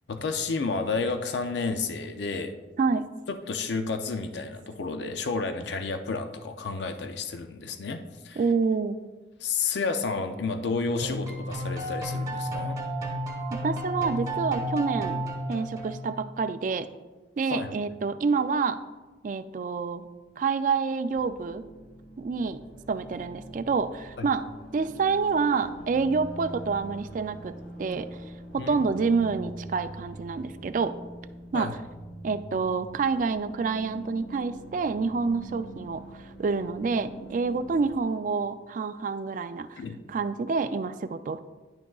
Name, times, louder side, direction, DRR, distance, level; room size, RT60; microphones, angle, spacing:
voice 1, 0.1-2.5 3.3-8.4 9.4-12.8 17.5-17.7 24.2-24.3 28.6-28.7 31.5-31.7 39.8-40.0, left 4 dB, 65° left, 7 dB, 0.5 m, -31 dB
voice 2, 8.4-9.0 13.6-15.2 15.5-16.9 17.4-18.8 19.2-20.1 20.4-21.6 22.2-22.6 22.9-24.4 24.7-27.5 27.8-28.1 28.5-31.0 31.5-31.7 32.2-36.0 36.4-39.8 40.1-41.4, right 4 dB, 45° right, 11 dB, 0.3 m, -27 dB
sound 1, 11.0-16.2, right 1 dB, 20° right, 1.1 m, -32 dB
sound 2, 21.1-38.0, right 1 dB, 85° left, 1.6 m, -44 dB
10.5 x 6.0 x 2.3 m, 1.2 s
head